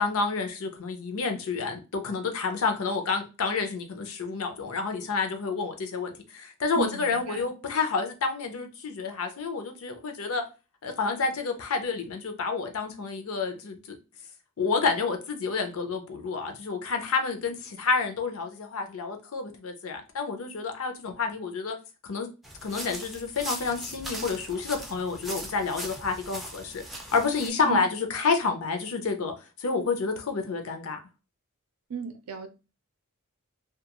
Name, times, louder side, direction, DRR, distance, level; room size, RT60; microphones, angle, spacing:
voice 1, 0.0-10.4 10.8-14.0 14.6-21.8 22.0-22.3 22.6-29.3 29.6-31.0, left 4 dB, 65° left, 0.5 m, -29 dB
voice 2, 6.8-7.5 27.6-27.8 31.9-32.5, right 6 dB, 75° right, 0.5 m, -35 dB
sound 1, 22.4-27.5, right 1 dB, ahead, 0.4 m, -40 dB
2.3 x 2.2 x 2.9 m
head